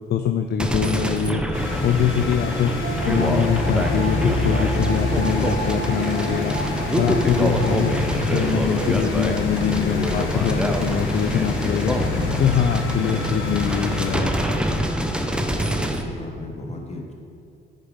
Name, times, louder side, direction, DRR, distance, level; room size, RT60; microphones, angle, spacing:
voice 1, 0.1-1.4 1.8-2.7 3.0-6.6 7.0-8.0 8.3-12.0 12.4-14.3, left 8 dB, 55° left, 7 dB, 0.4 m, -23 dB
sound 1, 0.6-16.0, right 1 dB, 5° right, 0.7 m, -26 dB
sound 2, 1.5-14.2, left 3 dB, 75° left, 1.4 m, -26 dB
sound 3, 2.8-8.0, right 2 dB, 55° right, 1.0 m, -31 dB
voice 2, 15.6-17.1, left 2 dB, 35° left, 1 dB, 1.5 m, -35 dB
9.0 x 5.2 x 5.1 m, 2.4 s
cardioid pair, 90°, 20 cm